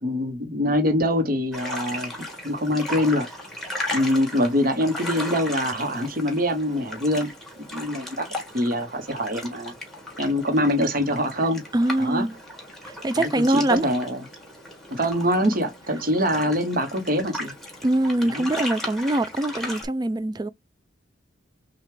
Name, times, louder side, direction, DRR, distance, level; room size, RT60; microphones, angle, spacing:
voice 1, 0.0-2.1 2.4-3.3 3.9-7.3 7.7-8.3 8.5-9.7 10.2-11.7 12.0-12.3 13.2-14.2 14.9-17.5 18.2-18.4, equal, 45° right, 1.0 m, -24 dB
sound 1, 1.5-19.8, left 1 dB, ahead, 1.7 m, -36 dB
voice 2, 11.7-12.3 12.8-13.9 17.8-20.5, right 1 dB, 20° right, 0.3 m, -23 dB
6.6 x 2.4 x 3.2 m
head